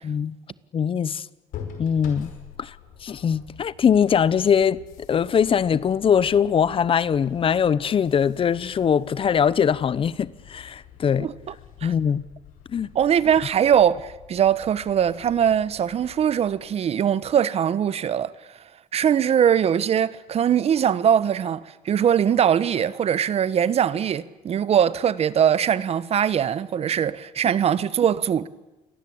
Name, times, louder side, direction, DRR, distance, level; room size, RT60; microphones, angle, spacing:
voice 1, 0.0-0.4 0.7-1.3 1.8-2.3 2.6-2.8 3.0-4.8 5.1-11.3 11.8-12.2 12.7-12.9, left 7 dB, 40° left, 0.9 m, -21 dB
sound 1, 1.5-17.2, left 8 dB, 80° left, 5.3 m, -46 dB
voice 2, 11.2-11.5 11.8-11.9 12.9-18.3 18.9-28.5, right 9 dB, 50° right, 1.1 m, -21 dB
29.0 x 23.0 x 8.7 m
cardioid pair, 105°, 14 cm